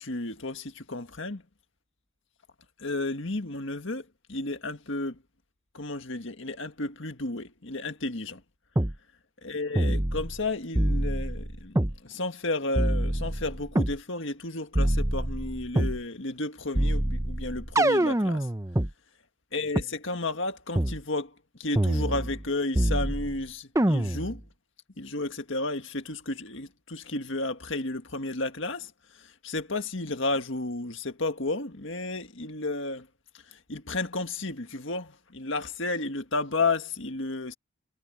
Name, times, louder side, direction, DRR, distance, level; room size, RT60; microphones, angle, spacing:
voice 1, 0.0-1.4 2.8-5.2 5.7-8.4 9.4-11.8 12.0-18.5 19.5-21.3 21.6-24.4 25.0-28.9 29.4-33.1 33.7-37.5, left 2 dB, 60° left, 1.9 m, -32 dB
sound 1, 8.8-8.9 9.8-10.4 10.8-12.0 12.8-14.0 14.7-16.0 16.8-18.9 19.8-19.9 20.8-21.0 21.8-22.5 22.8-23.4 23.8-24.4, right 1 dB, 15° right, 0.7 m, -25 dB
head